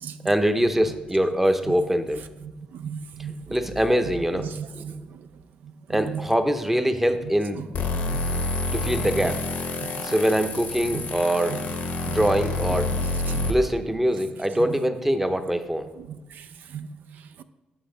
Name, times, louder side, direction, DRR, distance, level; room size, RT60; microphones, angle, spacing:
voice 1, 0.2-2.2 3.5-4.5 4.9-5.0 5.9-7.6 8.7-9.4 10.0-11.6 12.0-12.9 13.5-15.9, equal, 10° right, 0.7 m, -23 dB
voice 2, 2.4-3.6 4.3-5.3 5.6-6.3 7.6-7.7 8.1-8.5 9.8-10.1 10.9-11.6 12.1-12.2 12.7-13.5 14.5-14.8 16.0-17.4, right 7 dB, 75° right, 0.4 m, -37 dB
sound 1, 7.7-13.5, left 2 dB, 85° left, 1.0 m, -28 dB
7.2 x 6.3 x 3.9 m
cardioid pair, 95°, 3 cm